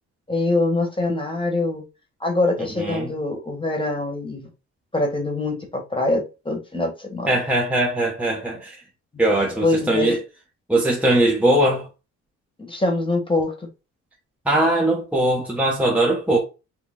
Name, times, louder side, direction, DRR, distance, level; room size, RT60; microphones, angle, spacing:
voice 1, 0.3-1.8 2.2-4.5 4.9-7.3 9.6-10.1 12.6-13.7, left 2 dB, 15° left, 1.2 m, -24 dB
voice 2, 2.6-3.1 7.3-8.8 9.2-10.2 10.7-11.9 14.5-16.4, right 1 dB, 5° right, 0.8 m, -20 dB
4.3 x 2.1 x 3.6 m
cardioid pair, 90°, 30 cm